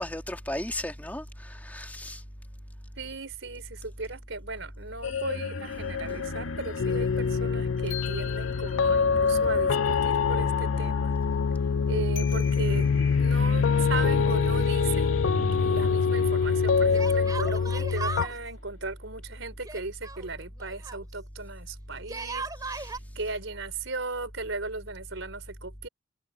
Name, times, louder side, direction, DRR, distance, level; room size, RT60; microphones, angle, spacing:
voice 1, 0.0-2.2 22.7-22.9, left 1 dB, 10° left, 2.4 m, -35 dB
voice 2, 3.0-11.2 11.9-15.2 15.5-25.9, right 3 dB, 75° right, 3.8 m, -37 dB
sound 1, 5.0-18.0, left 4 dB, 90° left, 2.1 m, -34 dB
sound 2, 6.8-18.3, left 5 dB, 70° left, 0.4 m, -25 dB
Yell, 13.7-14.6 14.8-14.9 16.9-18.4 19.6-21.0 22.0-23.0, right 4 dB, 20° right, 3.2 m, -37 dB
head